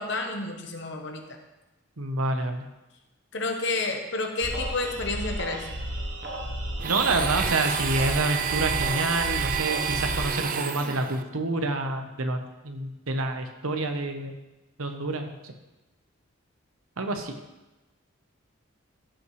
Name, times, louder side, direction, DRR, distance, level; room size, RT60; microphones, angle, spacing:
voice 1, 0.0-1.4 3.3-5.7, left 3 dB, 55° left, 4 dB, 1.1 m, -30 dB
voice 2, 2.0-2.6 6.8-14.4 14.8-15.5 17.0-17.3, right 2 dB, 85° right, 5 dB, 1.0 m, -28 dB
sound 1, 4.4-10.4, right 1 dB, 55° right, 1.1 m, -33 dB
Domestic sounds home sounds, 6.8-11.2, right 8 dB, 40° right, 0.4 m, -29 dB
14.0 x 5.6 x 3.2 m, 1.1 s
head